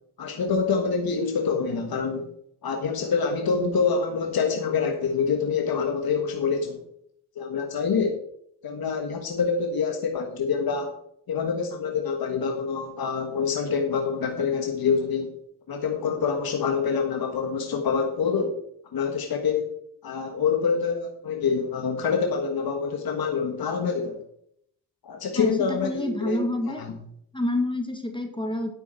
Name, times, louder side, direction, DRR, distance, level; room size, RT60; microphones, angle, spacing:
voice 1, 0.2-2.3 2.6-6.8 7.4-8.2 8.6-10.9 11.3-15.3 15.7-18.6 18.9-19.7 20.0-24.2 25.0-26.4 26.7-27.0, left 5 dB, 60° left, 3 dB, 1.6 m, -26 dB
voice 2, 25.3-26.8 27.3-28.7, left 1 dB, 10° left, 5 dB, 1.8 m, -28 dB
10.0 x 8.2 x 4.5 m, 0.70 s
supercardioid pair, 50°, 42 cm